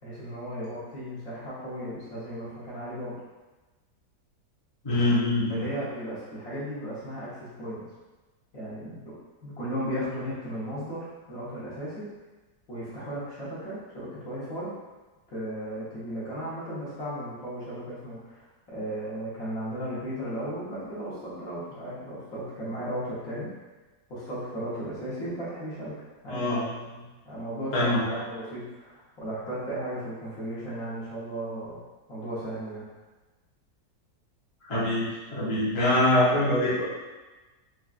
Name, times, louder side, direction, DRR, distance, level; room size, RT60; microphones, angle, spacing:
voice 1, 0.0-3.1 5.5-7.9 8.5-9.1 9.4-12.1 12.7-14.7 15.3-18.4 18.7-23.5 24.1-26.5 27.2-31.8 32.1-32.9, equal, 60° left, -9 dB, 1.4 m, -35 dB
voice 2, 4.8-5.7 26.3-26.8 27.7-28.0 34.6-36.8, left 1 dB, 25° left, -10 dB, 0.9 m, -24 dB
4.5 x 2.4 x 2.4 m, 1.2 s
omnidirectional pair, 1.7 m